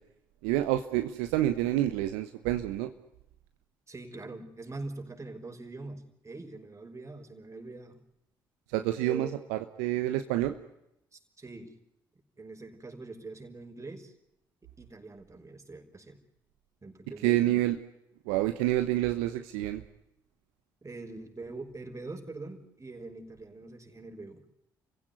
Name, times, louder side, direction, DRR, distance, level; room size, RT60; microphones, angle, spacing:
voice 1, 0.4-2.9 8.7-10.5 17.2-17.7 18.3-19.8, right 14 dB, 75° right, 8 dB, 1.1 m, -28 dB
voice 2, 3.9-8.0 9.0-9.3 11.1-11.7 12.4-14.1 14.8-16.2 16.8-17.6 20.8-24.4, right 2 dB, 25° right, 4 dB, 5.5 m, -43 dB
29.5 x 16.0 x 9.6 m, 0.82 s
hypercardioid pair, 45°, 11 cm